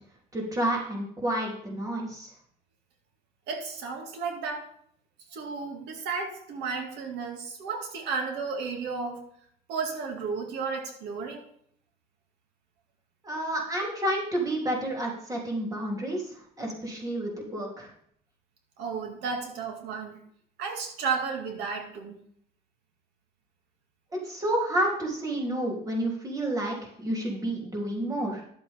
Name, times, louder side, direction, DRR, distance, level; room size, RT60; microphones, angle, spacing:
voice 1, 0.3-2.3 13.2-17.9 24.1-28.4, right 1 dB, 20° right, -2 dB, 3.2 m, -30 dB
voice 2, 3.5-4.6 5.3-9.2 9.7-11.4 18.8-20.2 20.6-22.2, right 5 dB, 85° right, 3 dB, 2.3 m, -33 dB
11.0 x 7.8 x 3.6 m, 0.65 s
cardioid pair, 110°, 17 cm